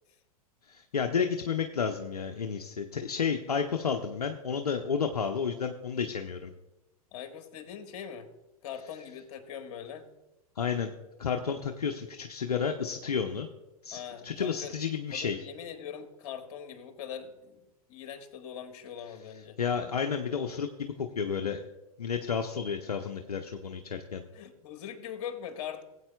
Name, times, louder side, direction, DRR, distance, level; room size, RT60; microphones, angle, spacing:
voice 1, 0.7-6.5 10.6-10.9 11.2-13.5 13.8-15.4 19.6-21.6 22.0-24.2, left 6 dB, 85° left, 5 dB, 0.7 m, -31 dB
voice 2, 7.1-8.3 8.6-10.1 13.9-14.7 15.1-17.6 17.9-19.6 24.3-25.8, left 8 dB, 55° left, 7 dB, 1.4 m, -41 dB
18.0 x 8.2 x 2.3 m, 0.98 s
hypercardioid pair, 100°, 19 cm